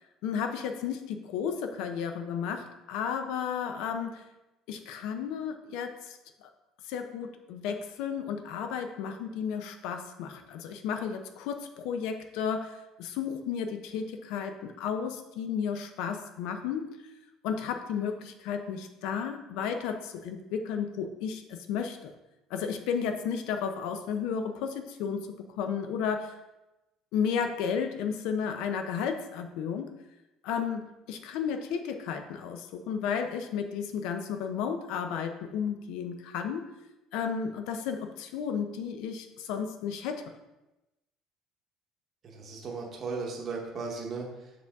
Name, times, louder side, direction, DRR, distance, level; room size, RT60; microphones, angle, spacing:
voice 1, 0.2-4.2 4.7-6.5 6.8-17.0 17.4-22.1 22.5-26.4 27.1-29.9 30.4-36.7 37.1-40.2, left 7 dB, 65° left, 6 dB, 0.6 m, -33 dB
voice 2, 42.2-44.7, right 4 dB, 25° right, -1 dB, 0.9 m, -37 dB
6.7 x 5.0 x 3.5 m, 0.99 s
cardioid pair, 180°, 0 cm